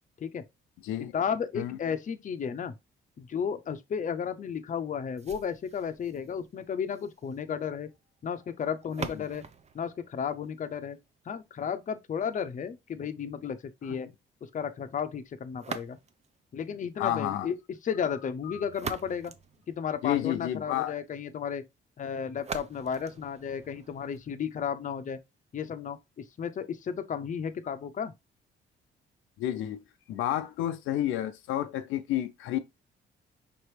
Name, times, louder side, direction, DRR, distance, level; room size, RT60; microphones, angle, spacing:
voice 1, 1.1-2.7 3.2-7.9 8.2-9.4 9.7-11.0 11.3-14.1 14.5-16.0 16.5-17.6 17.8-19.3 19.7-21.6 22.0-25.2 25.5-28.1, left 7 dB, 40° left, 0.6 m, -33 dB
sound 1, 5.2-11.2 15.5-16.4 18.4-20.4 22.4-24.4, right 5 dB, 35° right, 0.6 m, -44 dB
voice 2, 17.0-17.5 18.4-18.6 20.0-20.9 29.4-29.8 30.1-32.6, left 12 dB, 90° left, 0.5 m, -30 dB
5.2 x 3.0 x 3.2 m
cardioid pair, 90°, 20 cm